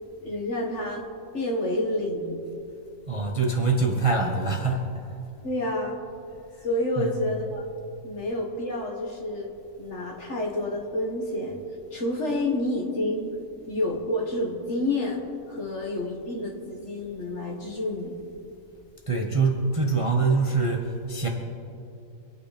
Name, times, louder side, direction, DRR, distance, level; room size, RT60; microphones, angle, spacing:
voice 1, 0.2-1.0 1.3-2.4 5.4-6.0 6.6-7.7 8.0-9.5 9.8-11.6 11.9-13.3 13.7-15.2 15.5-18.1, left 1 dB, 45° left, -1 dB, 2.2 m, -29 dB
voice 2, 3.1-4.8 7.0-7.2 19.1-21.3, right 4 dB, 20° right, 1 dB, 1.1 m, -24 dB
25.5 x 9.0 x 4.4 m, 2.6 s
omnidirectional pair, 1.7 m